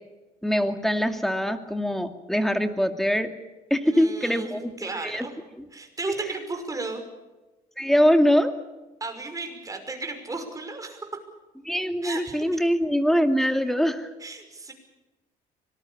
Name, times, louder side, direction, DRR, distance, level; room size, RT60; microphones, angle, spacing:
voice 1, 0.4-3.3 3.7-5.3 7.8-8.5 11.6-14.1, equal, ahead, 7 dB, 2.4 m, -23 dB
voice 2, 3.8-5.3 5.7-7.0 9.0-11.0 12.0-12.6 14.2-14.7, right 3 dB, 20° right, 5 dB, 5.9 m, -34 dB
25.0 x 20.0 x 7.2 m, 1.1 s
cardioid pair, 110°, 17 cm